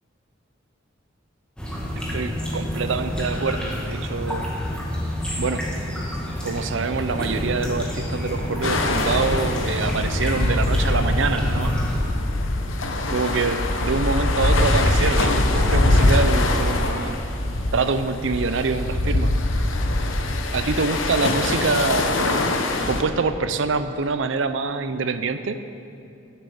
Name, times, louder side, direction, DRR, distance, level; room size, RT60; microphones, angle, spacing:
sound 1, 1.6-12.0, equal, 5° left, 1.7 m, -28 dB
voice 1, 2.1-4.5 5.3-5.6 6.4-11.8 13.1-17.2 17.7-19.3 20.5-22.4 22.9-25.6, right 4 dB, 70° right, 11 dB, 0.6 m, -25 dB
sound 2, 7.1-17.0, left 2 dB, 60° left, 1.1 m, -40 dB
sound 3, 8.6-23.0, left 2 dB, 80° left, 0.9 m, -23 dB
10.5 x 7.4 x 6.9 m, 2.6 s
head